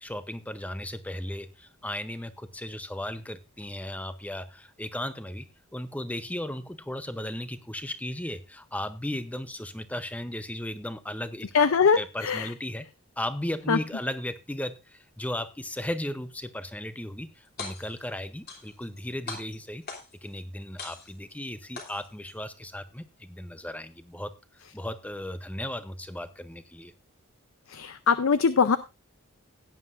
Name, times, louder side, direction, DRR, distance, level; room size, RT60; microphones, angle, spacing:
voice 1, 0.0-5.5 5.7-11.5 11.9-12.9 13.2-19.8 20.2-24.3 24.7-26.9, left 1 dB, 5° left, 12 dB, 0.6 m, -36 dB
voice 2, 11.5-12.5 13.7-13.8 27.7-28.8, left 5 dB, 70° left, 12 dB, 0.5 m, -22 dB
sound 1, 17.4-18.1 18.5-19.0 19.3-20.3 20.8-21.3 21.8-22.3, left 4 dB, 45° left, 2.9 m, -40 dB
16.5 x 9.6 x 2.5 m, 0.24 s
head